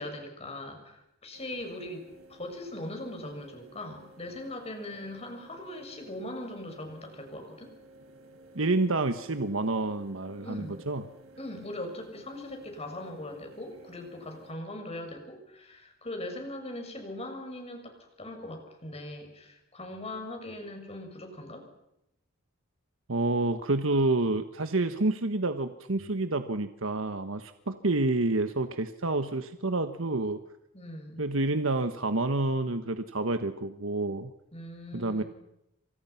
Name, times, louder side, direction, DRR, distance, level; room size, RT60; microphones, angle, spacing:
voice 1, 0.0-7.7 10.4-10.8 11.4-21.7 30.7-31.2 34.5-35.3, left 1 dB, 30° left, 4 dB, 7.1 m, -40 dB
sound 1, 1.3-14.5, right 1 dB, 90° right, 6.2 m, -54 dB
voice 2, 8.5-11.0 23.1-30.4 31.2-34.3 34.9-35.2, right 2 dB, 70° right, 9 dB, 1.4 m, -28 dB
29.0 x 26.0 x 5.9 m, 0.83 s
head